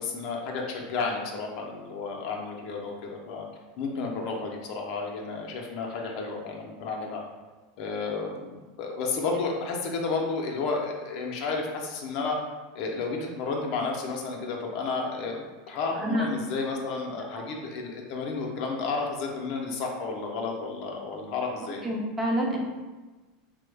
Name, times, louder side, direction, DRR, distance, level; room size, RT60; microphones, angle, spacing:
voice 1, 0.0-3.5 3.8-7.2 7.8-12.4 12.7-21.8, left 4 dB, 60° left, 1 dB, 0.5 m, -32 dB
voice 2, 21.8-22.6, equal, 25° right, -1 dB, 0.7 m, -27 dB
3.0 x 2.1 x 3.3 m, 1.2 s
hypercardioid pair, 100°, 0 cm